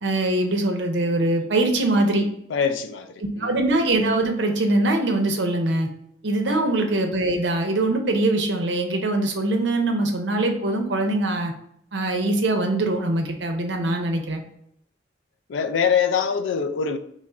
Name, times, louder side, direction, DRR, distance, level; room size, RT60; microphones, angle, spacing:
voice 1, 0.0-2.2 3.4-5.9 6.2-11.5 11.9-14.4, right 2 dB, 70° right, 0.7 m, -22 dB
voice 2, 2.5-3.5 6.5-6.6 15.5-17.0, left 6 dB, 80° left, 0.4 m, -24 dB
3.1 x 2.4 x 4.2 m
head